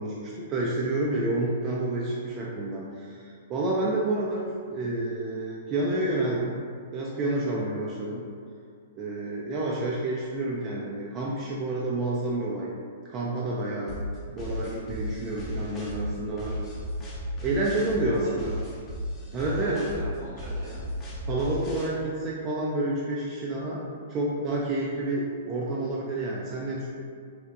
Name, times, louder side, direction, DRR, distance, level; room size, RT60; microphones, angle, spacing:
voice 1, 0.0-4.4 4.7-6.6 6.9-8.2 8.9-12.7 13.1-13.9 14.3-16.6 17.4-18.6 19.3-19.8 21.3-23.8 24.1-26.9, right 2 dB, 30° right, -5 dB, 0.3 m, -29 dB
sound 1, 13.9-21.9, equal, 25° left, 0.6 m, -34 dB
voice 2, 17.9-18.3 19.4-20.8, equal, 75° right, -7 dB, 1.1 m, -41 dB
2.8 x 2.0 x 2.3 m, 2.2 s
hypercardioid pair, 120°, 0 cm